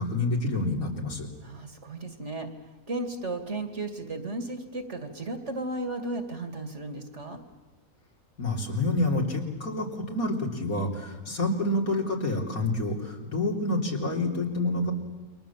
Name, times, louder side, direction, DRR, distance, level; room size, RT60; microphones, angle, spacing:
voice 1, 0.0-1.3 8.4-14.9, left 2 dB, 70° left, -1 dB, 4.0 m, -28 dB
voice 2, 1.4-7.4, right 2 dB, 50° right, 6 dB, 2.6 m, -35 dB
28.5 x 24.0 x 7.3 m, 1.2 s
omnidirectional pair, 1.6 m